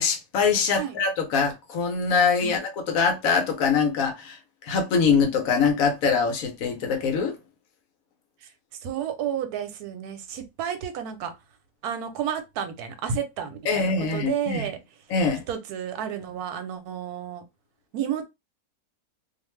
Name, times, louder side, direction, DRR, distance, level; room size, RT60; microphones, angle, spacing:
voice 1, 0.0-7.4 13.7-14.7 15.1-15.4, left 5 dB, 70° left, 1.0 m, -23 dB
voice 2, 8.8-11.3 11.8-14.8 15.5-17.4 17.9-18.3, right 8 dB, 85° right, 1.1 m, -31 dB
2.5 x 2.4 x 3.1 m
omnidirectional pair, 1.6 m